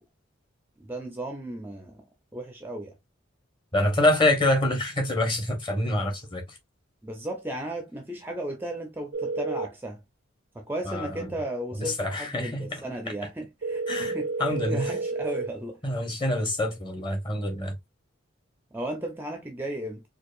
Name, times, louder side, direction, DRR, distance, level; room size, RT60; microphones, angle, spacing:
voice 1, 0.8-2.0 2.3-2.9 7.0-10.0 10.5-14.3 14.7-15.8 18.7-20.0, right 1 dB, 10° right, 0.5 m, -35 dB
voice 2, 3.7-6.4 10.8-11.3 11.8-12.8 13.9-14.9 15.8-17.7, left 1 dB, 25° left, 1.1 m, -26 dB
sound 1, 9.1-9.7 13.6-15.5, right 3 dB, 60° right, 0.5 m, -30 dB
4.5 x 2.5 x 2.4 m
head